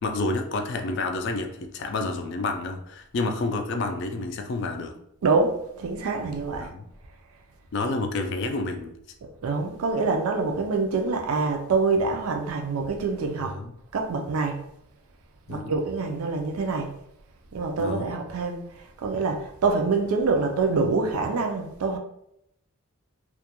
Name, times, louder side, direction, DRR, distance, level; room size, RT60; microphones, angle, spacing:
voice 1, 0.0-5.0 6.6-6.9 7.7-8.9 13.4-13.7 15.5-15.8 17.8-18.1, left 3 dB, 55° left, 0.3 m, -29 dB
voice 2, 5.2-6.7 9.4-13.5 13.9-14.6 15.5-16.9 17.5-18.6 19.0-22.0, right 4 dB, 80° right, 0.4 m, -25 dB
2.3 x 2.1 x 2.8 m
head